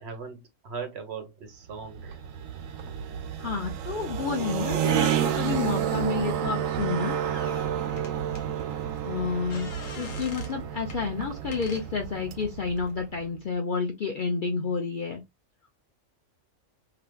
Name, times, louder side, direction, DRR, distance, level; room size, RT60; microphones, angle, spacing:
voice 1, 0.0-2.2 4.1-4.4 7.7-8.2, right 5 dB, 55° right, 1.0 m, -40 dB
sound 1, 1.7-13.3, right 9 dB, 85° right, 1.0 m, -30 dB
voice 2, 3.4-7.2 9.0-9.7 10.0-15.2, left 5 dB, 60° left, 0.5 m, -30 dB
sound 2, 7.3-8.4 9.5-10.6 10.9-11.0 11.5-11.9, left 5 dB, 80° left, 1.3 m, -44 dB
3.3 x 2.9 x 2.2 m
omnidirectional pair, 1.4 m